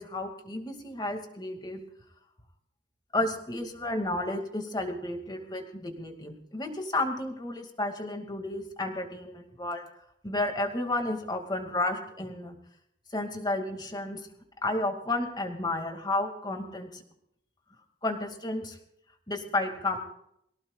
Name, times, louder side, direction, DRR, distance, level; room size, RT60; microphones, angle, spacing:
voice 1, 0.0-1.8 3.1-9.8 10.2-12.6 13.1-14.2 14.6-17.0 18.0-18.8 19.3-20.0, left 2 dB, 25° left, 4 dB, 2.2 m, -32 dB
22.5 x 18.0 x 2.4 m, 0.74 s
head